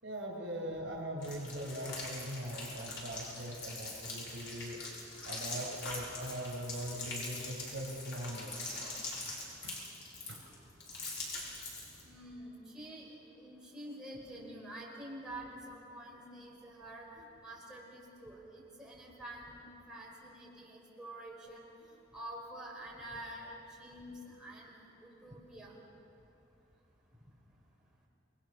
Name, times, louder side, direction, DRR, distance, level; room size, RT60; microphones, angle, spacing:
voice 1, 0.0-4.8 5.2-8.7 9.6-9.8 10.3-10.4, equal, 70° right, 2 dB, 5.8 m, -41 dB
sound 1, 1.2-12.0, left 2 dB, 70° left, 6.6 m, -43 dB
voice 2, 12.0-19.6 19.9-21.7 22.1-25.8, right 1 dB, 5° right, -4 dB, 4.9 m, -48 dB
28.5 x 21.0 x 6.5 m, 2.8 s
head